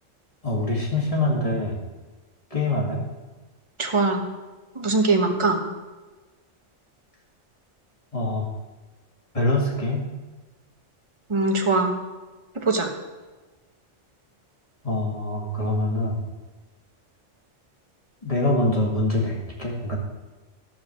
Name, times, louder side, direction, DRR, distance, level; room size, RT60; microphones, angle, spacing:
voice 1, 0.4-1.8 2.5-3.0 8.1-8.5 9.3-10.1 14.8-16.2 18.2-20.0, left 2 dB, 30° left, -2 dB, 2.1 m, -24 dB
voice 2, 3.8-4.2 4.8-5.6 11.3-11.9 12.7-12.9, right 3 dB, 25° right, 3 dB, 1.1 m, -21 dB
12.5 x 4.8 x 7.4 m, 1.2 s
omnidirectional pair, 1.3 m